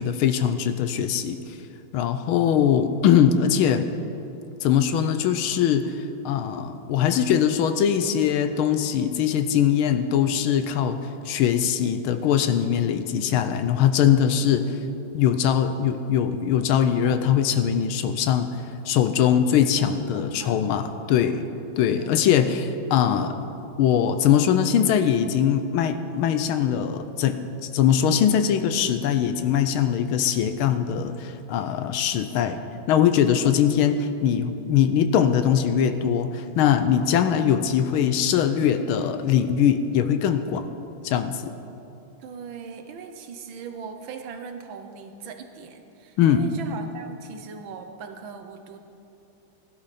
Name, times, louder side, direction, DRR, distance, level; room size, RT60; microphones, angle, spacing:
voice 1, 0.0-1.6 1.9-3.9 4.6-14.8 15.1-18.5 18.8-21.5 21.8-23.4 23.8-27.5 27.7-32.6 32.9-40.7 41.0-41.5 46.2-46.5, left 9 dB, 80° left, 10 dB, 1.5 m, -21 dB
voice 2, 20.1-20.7 22.0-22.5 42.2-48.8, right 5 dB, 70° right, 6 dB, 1.6 m, -40 dB
16.0 x 11.5 x 4.2 m, 2.8 s
omnidirectional pair, 2.3 m